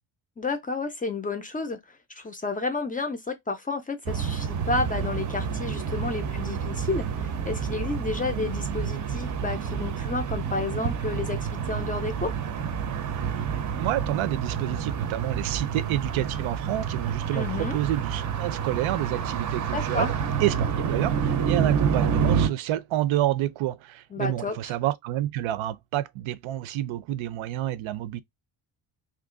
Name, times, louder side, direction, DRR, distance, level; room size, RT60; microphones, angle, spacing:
voice 1, 0.4-11.4 11.6-12.3 17.3-17.8 19.7-20.1 24.1-24.7, left 3 dB, 20° left, 0.4 m, -31 dB
sound 1, 4.1-22.5, right 7 dB, 40° right, 0.5 m, -28 dB
voice 2, 13.8-20.1 20.4-28.2, right 13 dB, 85° right, 0.6 m, -29 dB
2.9 x 2.5 x 3.6 m
cardioid pair, 180°, 47 cm